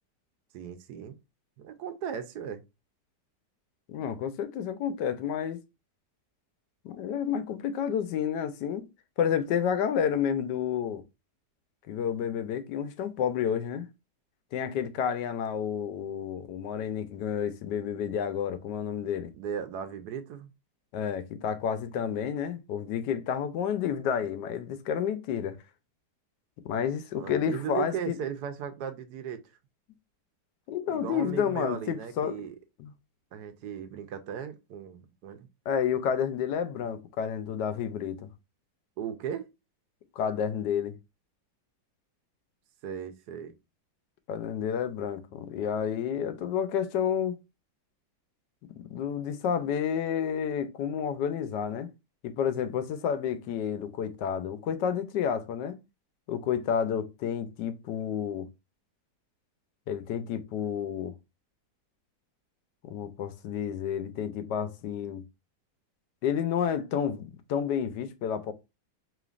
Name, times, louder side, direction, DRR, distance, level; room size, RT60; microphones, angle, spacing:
voice 1, 0.5-1.2 1.6-2.6 19.4-20.5 27.2-29.4 30.9-32.5 33.3-35.5 39.0-39.5 42.8-43.5, right 8 dB, 75° right, 1.2 m, -37 dB
voice 2, 3.9-5.6 6.8-8.8 9.2-11.0 11.9-13.9 14.5-19.3 20.9-25.6 26.6-28.2 30.7-32.4 32.8-32.9 35.7-38.2 40.2-40.9 44.3-47.4 48.9-51.9 52.2-55.8 56.3-58.5 59.9-61.1 62.8-65.2 66.2-68.5, left 8 dB, 90° left, 1.3 m, -30 dB
5.1 x 3.1 x 2.4 m
omnidirectional pair, 1.8 m